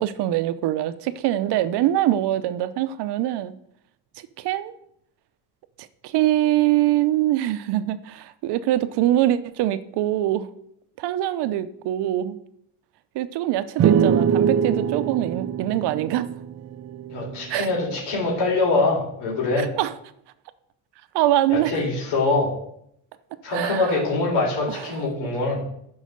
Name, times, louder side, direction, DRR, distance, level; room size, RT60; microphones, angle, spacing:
voice 1, 0.0-3.5 4.4-4.7 6.0-10.5 11.0-12.4 13.1-16.3 17.5-17.7 19.6-19.9 21.1-21.7 23.5-24.0 24.7-25.0, right 13 dB, 80° right, 13 dB, 0.8 m, -23 dB
sound 1, 13.8-17.4, right 8 dB, 40° right, 0.7 m, -22 dB
voice 2, 17.1-19.7 21.5-22.5 23.4-25.6, left 3 dB, 80° left, -3 dB, 3.9 m, -23 dB
12.0 x 4.9 x 6.5 m, 0.74 s
cardioid pair, 135°, 40 cm